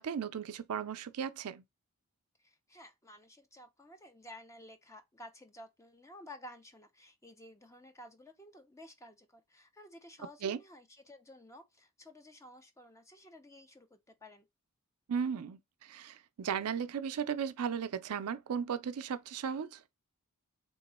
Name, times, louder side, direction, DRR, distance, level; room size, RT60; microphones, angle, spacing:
voice 1, 0.0-1.6 10.4-10.6 15.1-19.8, right 7 dB, 75° right, 0.4 m, -36 dB
voice 2, 2.4-14.4, left 1 dB, 15° left, 0.7 m, -53 dB
3.6 x 3.0 x 4.1 m
head